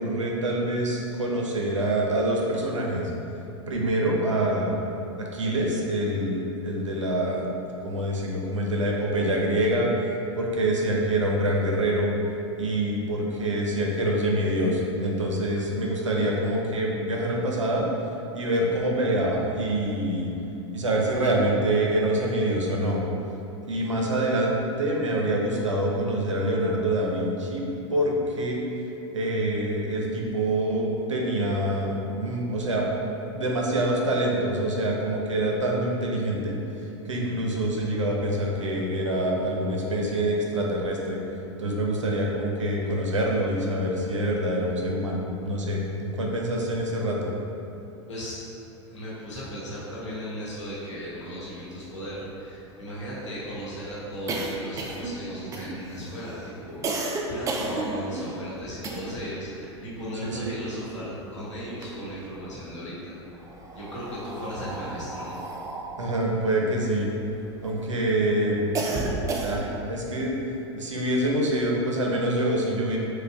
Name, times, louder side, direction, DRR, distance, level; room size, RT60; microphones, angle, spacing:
voice 1, 0.0-3.1 3.7-4.8 5.3-7.5 7.8-9.9 10.4-12.1 12.6-17.9 18.3-20.3 20.7-23.0 23.7-27.6 27.9-28.6 29.1-32.9 33.3-36.5 37.1-41.2 41.6-47.3 60.2-60.5 66.0-67.1 67.6-68.7 69.4-70.4 70.8-73.0, right 1 dB, 85° right, -1 dB, 0.5 m, -26 dB
voice 2, 48.1-48.4 48.8-63.1 63.7-65.4, equal, 80° left, -9 dB, 1.0 m, -36 dB
sound 1, 51.2-51.3 51.5-51.6 51.9-59.4 59.7-61.2 61.6-62.5 63.3-67.7 68.2-69.9, right 2 dB, 20° right, 0.3 m, -33 dB
4.4 x 2.1 x 2.3 m, 2.9 s
figure-of-eight pair, 90°, 15 cm